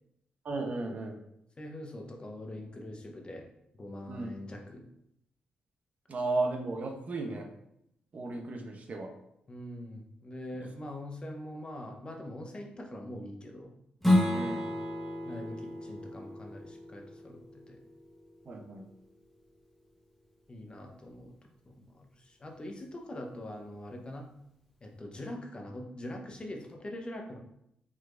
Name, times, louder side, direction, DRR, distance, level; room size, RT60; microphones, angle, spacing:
voice 1, 0.4-1.2 4.1-4.3 6.1-7.5 8.1-9.1 14.3-14.7 18.5-18.9, right 2 dB, 55° right, 3 dB, 0.8 m, -34 dB
voice 2, 1.6-3.5 3.8-4.8 9.5-13.7 15.3-17.8 20.5-21.3 21.7-24.3 24.8-27.4, left 1 dB, 30° left, 2 dB, 0.9 m, -43 dB
Strum, 14.0-19.2, left 1 dB, 5° left, 1.2 m, -32 dB
4.9 x 4.1 x 2.5 m, 0.77 s
cardioid pair, 75°, 3 cm